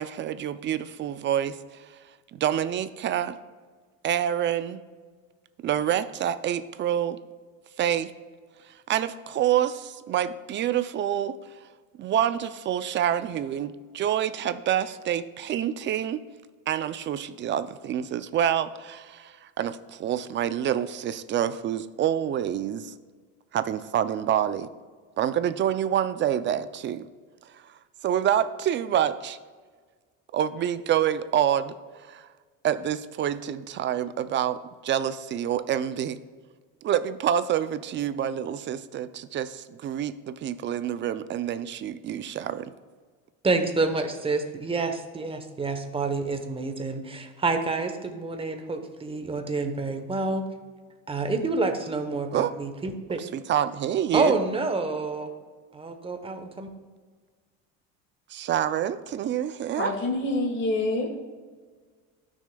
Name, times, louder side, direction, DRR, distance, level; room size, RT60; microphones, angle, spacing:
voice 1, 0.0-3.4 4.0-4.8 5.6-7.2 7.8-8.1 8.6-11.7 12.0-16.2 16.7-22.9 23.5-24.7 25.2-27.1 27.4-29.4 30.3-32.3 32.6-36.2 36.8-42.7 52.3-52.5 53.2-54.3 58.3-59.9, right 10 dB, 35° right, 13 dB, 0.4 m, -27 dB
voice 2, 43.4-50.5 51.1-53.2 54.1-55.3 55.7-56.7, right 3 dB, 15° right, 6 dB, 0.9 m, -28 dB
voice 3, 59.8-61.1, left 2 dB, 35° left, 0 dB, 2.2 m, -26 dB
13.5 x 6.3 x 2.3 m, 1.5 s
cardioid pair, 125°, 35 cm